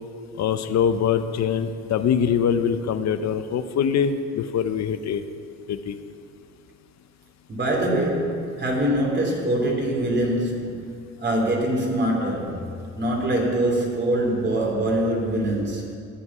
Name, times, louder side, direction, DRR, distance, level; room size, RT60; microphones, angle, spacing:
voice 1, 0.4-5.2 5.7-6.0, left 7 dB, 65° left, 10 dB, 0.7 m, -23 dB
voice 2, 7.5-10.9 11.2-15.9, right 1 dB, 35° right, -1 dB, 3.2 m, -24 dB
14.0 x 5.2 x 9.4 m, 2.4 s
cardioid pair, 90°, 30 cm